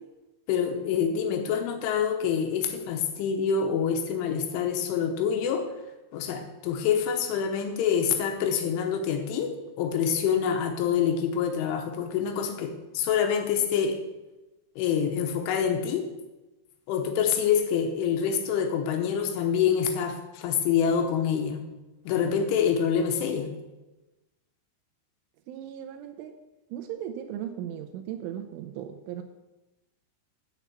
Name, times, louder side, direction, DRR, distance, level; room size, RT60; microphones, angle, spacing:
voice 1, 0.5-5.7 6.1-14.0 14.8-16.1 16.9-21.6 22.1-23.5, left 7 dB, 75° left, 4 dB, 3.3 m, -26 dB
voice 2, 25.5-26.3 26.7-29.2, right 10 dB, 80° right, 6 dB, 2.9 m, -37 dB
7.3 x 7.1 x 8.2 m, 1.0 s
omnidirectional pair, 5.9 m